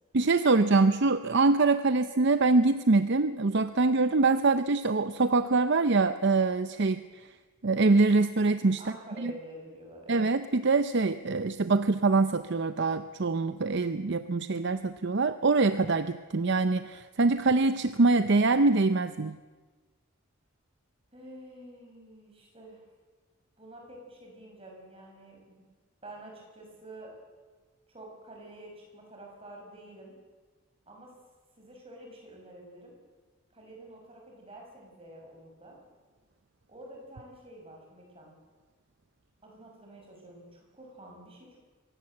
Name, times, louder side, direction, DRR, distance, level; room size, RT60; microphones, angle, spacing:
voice 1, 0.1-7.0 7.6-8.8 9.2-9.3 10.1-19.3, right 3 dB, 55° right, 11 dB, 0.6 m, -24 dB
voice 2, 8.8-10.3 21.1-22.8 23.6-25.6 26.0-27.1 27.9-30.1 30.9-31.1 31.5-32.9 33.5-35.8 36.7-38.3 39.4-41.6, right 1 dB, 25° right, 0 dB, 6.4 m, -48 dB
23.5 x 18.0 x 7.8 m, 1.3 s
head